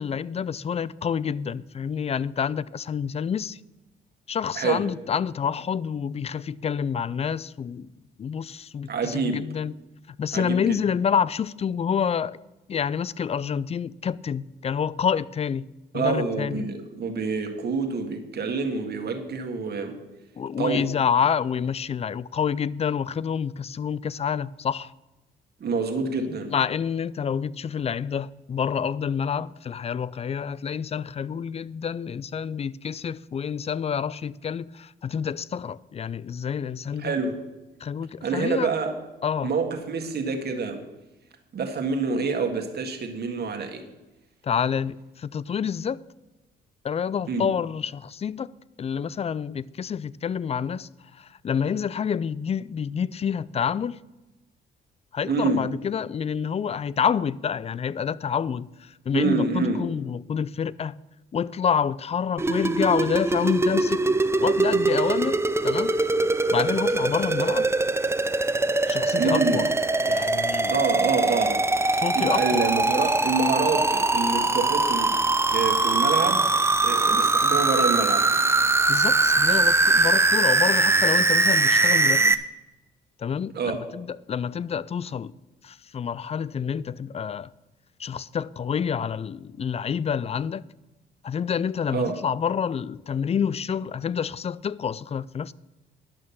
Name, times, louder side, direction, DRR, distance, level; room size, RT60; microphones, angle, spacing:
voice 1, 0.0-3.6 4.3-7.9 8.2-9.8 10.1-12.4 12.7-15.7 15.9-16.6 20.4-24.9 26.5-37.1 37.8-38.7 39.2-39.5 44.4-46.0 46.8-48.5 48.8-54.0 55.1-61.0 61.3-65.9 66.5-67.7 68.9-69.7 70.1-70.8 71.9-72.7 78.9-82.4 83.2-85.3 85.6-87.5 88.0-90.6 91.2-95.5, left 7 dB, 30° left, 0.4 m, -28 dB
voice 2, 8.9-9.4 10.3-10.8 15.9-20.0 20.6-20.9 25.6-26.5 37.0-37.4 38.2-39.0 39.4-40.8 41.5-43.8 47.3-47.5 55.2-55.6 59.1-59.9 69.1-69.7 70.7-75.2 75.5-76.5 76.8-78.3 83.5-83.8 91.9-92.2, right 4 dB, 55° right, 1.8 m, -27 dB
sound 1, 62.4-82.3, right 3 dB, 15° right, 0.6 m, -22 dB
11.0 x 6.4 x 7.1 m
cardioid pair, 90°, 20 cm